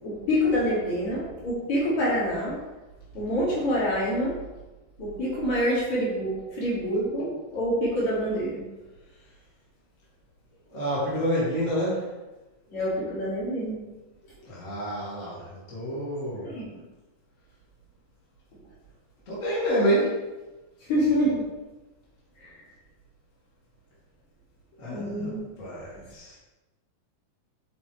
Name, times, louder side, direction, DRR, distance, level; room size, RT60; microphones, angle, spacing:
voice 1, 0.0-2.6 3.1-4.4 5.0-8.6 12.7-13.8 16.5-16.6 20.9-21.4 22.4-22.6 24.9-25.4, equal, 55° left, -7 dB, 3.9 m, -26 dB
voice 2, 10.7-12.1 14.4-16.5 19.3-20.3 24.8-26.4, equal, 25° left, -7 dB, 2.7 m, -28 dB
8.1 x 7.9 x 3.4 m, 1.1 s
omnidirectional pair, 4.0 m